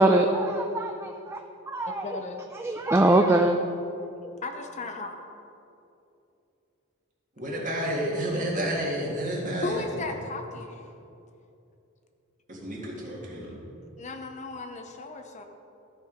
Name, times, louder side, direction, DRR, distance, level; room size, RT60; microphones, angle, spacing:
voice 1, 0.0-1.4 1.7-2.1 2.6-3.6, right 1 dB, 10° right, 4 dB, 0.3 m, -22 dB
voice 2, 1.9-2.4 4.0-5.1 9.6-10.9 14.0-15.4, left 2 dB, 35° left, 5 dB, 0.6 m, -36 dB
voice 3, 7.4-9.8 12.5-13.5, right 1 dB, 40° right, -4 dB, 2.1 m, -30 dB
13.5 x 4.6 x 5.1 m, 2.7 s
head